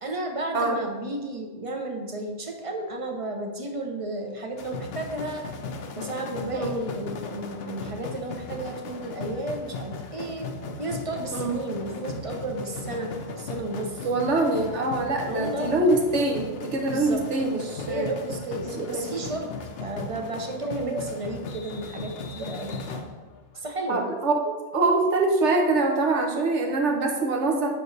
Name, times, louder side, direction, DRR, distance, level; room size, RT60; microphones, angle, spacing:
voice 1, 0.0-5.5 5.9-10.5 10.8-14.1 15.3-15.9 16.9-17.2 17.9-19.5 19.8-23.1 23.5-24.1, right 2 dB, 35° right, 3 dB, 0.7 m, -33 dB
sound 1, 4.6-23.6, left 4 dB, 60° left, 0.8 m, -37 dB
voice 2, 14.0-18.1 18.6-19.1 20.6-21.0 23.9-27.7, right 2 dB, 70° right, 2 dB, 1.3 m, -24 dB
7.9 x 5.1 x 3.3 m, 1.3 s
omnidirectional pair, 1.3 m